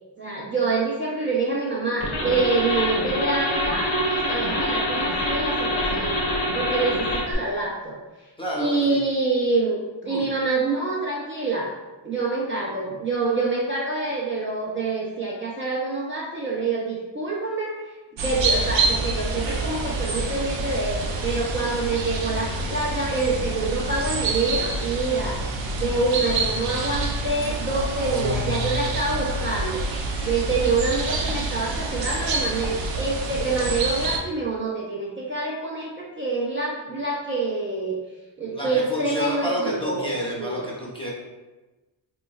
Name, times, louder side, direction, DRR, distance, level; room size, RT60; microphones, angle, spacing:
voice 1, 0.2-8.0 8.6-9.8 10.0-11.7 12.0-17.7 18.2-25.4 25.8-29.8 30.2-38.0 38.4-40.1 40.4-40.6, right 3 dB, 25° right, -6 dB, 0.5 m, -26 dB
sound 1, 2.0-7.3, left 1 dB, 85° left, 1.1 m, -25 dB
voice 2, 8.4-9.0 10.0-10.3 38.5-41.1, equal, 10° left, -4 dB, 0.7 m, -29 dB
birds singing in the autumn forest - front, 18.2-34.2, right 2 dB, 70° right, 0.6 m, -27 dB
4.2 x 3.0 x 2.3 m, 1.2 s
wide cardioid pair, 135°, 47 cm